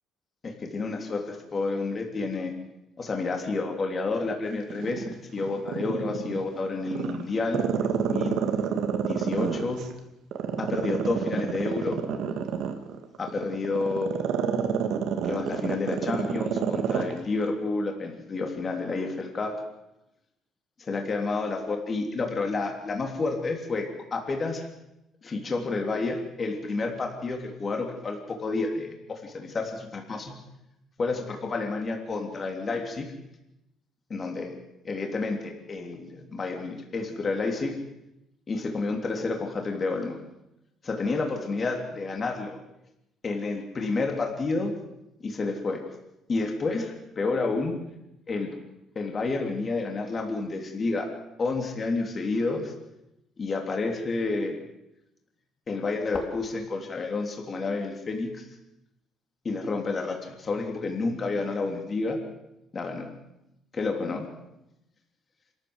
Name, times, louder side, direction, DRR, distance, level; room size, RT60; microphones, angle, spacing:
voice 1, 0.4-2.5 3.0-8.4 9.0-9.8 10.6-12.0 13.2-14.1 15.2-19.6 20.8-24.7 25.2-30.3 31.0-33.1 34.1-34.5 34.8-37.7 38.5-40.2 40.8-42.6 43.2-44.7 45.2-45.8 46.3-47.8 48.3-48.5 48.9-51.1 51.4-52.7 53.4-54.6 55.7-58.5 59.4-62.2 62.7-63.1 63.7-64.2, left 3 dB, 30° left, 2 dB, 3.3 m, -30 dB
Growling, 4.7-6.4 6.9-9.9 10.3-17.1 17.4-17.5, right 8 dB, 75° right, 2.4 m, -28 dB
27.0 x 14.0 x 8.0 m, 0.90 s
cardioid pair, 130°, 0 cm